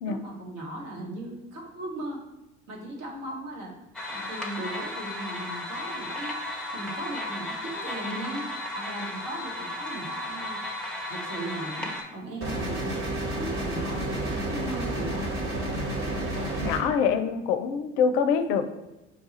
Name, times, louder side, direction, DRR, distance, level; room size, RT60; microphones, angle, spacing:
voice 1, 0.0-2.2 2.7-3.7 4.1-6.3 6.7-8.5 8.7-10.6 11.1-13.1 13.4-15.2, right 1 dB, 60° right, -2 dB, 1.4 m, -37 dB
sound 1, 3.9-12.0, left 1 dB, ahead, 0.8 m, -34 dB
sound 2, 12.4-16.8, right 1 dB, 35° right, 1.4 m, -30 dB
voice 2, 16.6-18.7, left 6 dB, 65° left, 9 dB, 0.5 m, -25 dB
4.5 x 2.3 x 4.1 m, 1.0 s
hypercardioid pair, 60°, 36 cm